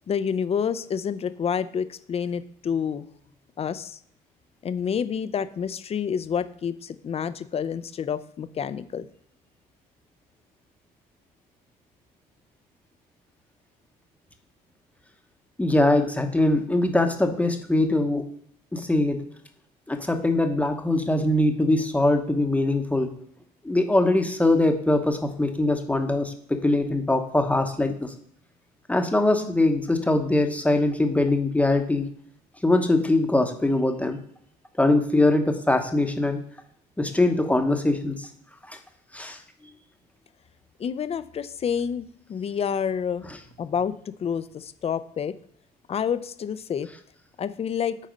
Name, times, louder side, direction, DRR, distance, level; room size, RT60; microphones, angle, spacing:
voice 1, 0.1-3.1 3.6-4.0 4.6-9.1 40.8-43.3 43.6-45.3 45.9-46.9 47.4-48.0, left 7 dB, 35° left, 13 dB, 0.5 m, -28 dB
voice 2, 15.6-18.2 18.7-19.2 19.9-23.1 23.6-28.1 28.9-32.1 32.6-34.2 34.8-36.4 37.0-38.3 38.7-38.8 39.1-39.4 43.2-43.4, left 2 dB, 10° left, 5 dB, 0.9 m, -22 dB
9.1 x 4.2 x 5.2 m, 0.66 s
cardioid pair, 110°, 17 cm